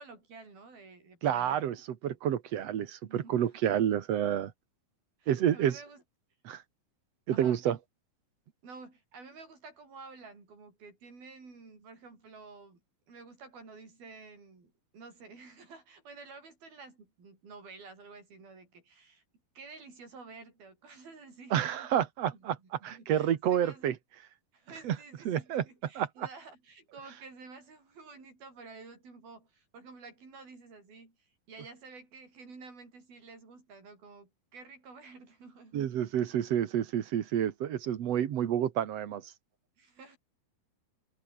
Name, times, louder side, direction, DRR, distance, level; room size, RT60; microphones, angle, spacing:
voice 1, 0.0-1.6 3.1-3.7 5.2-6.0 7.3-7.6 8.6-12.8 13.1-19.2 19.5-22.0 22.3-23.9 24.5-36.1 39.8-40.2, right 4 dB, 85° right, 9.8 m, -51 dB
voice 2, 1.2-1.8 2.0-4.5 5.3-5.8 6.4-6.6 7.3-7.8 21.5-22.6 22.8-23.9 24.8-25.0 25.3-25.6 26.0-26.3 35.7-39.3, right 10 dB, 55° right, 2.1 m, -29 dB
omnidirectional pair, 4.2 m